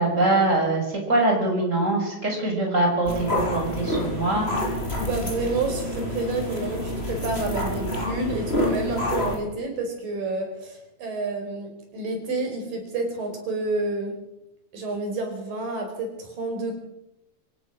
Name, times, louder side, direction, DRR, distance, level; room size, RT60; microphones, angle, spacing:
voice 1, 0.0-4.5, right 2 dB, 15° right, 1 dB, 6.4 m, -23 dB
sound 1, 3.0-9.4, left 1 dB, 15° left, 6.1 m, -28 dB
voice 2, 5.0-14.2 14.7-16.7, right 2 dB, 60° right, 4 dB, 6.2 m, -29 dB
26.0 x 16.0 x 6.4 m, 0.89 s
omnidirectional pair, 4.6 m